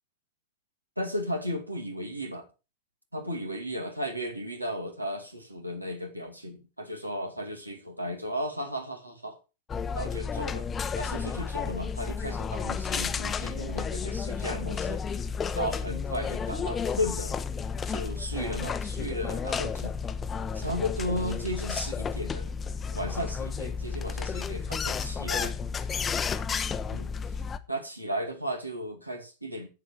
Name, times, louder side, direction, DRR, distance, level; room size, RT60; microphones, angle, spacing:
voice 1, 1.0-2.5 3.1-9.4 9.9-10.7 11.0-15.0 15.5-17.3 17.9-19.9 20.5-22.5 22.9-25.6 26.9-27.1 27.7-29.7, equal, 85° right, 2.4 m, -35 dB
sound 1, 9.7-27.6, left 6 dB, 20° left, 0.8 m, -32 dB
10.5 x 8.0 x 4.7 m
figure-of-eight pair, 90°, 0 cm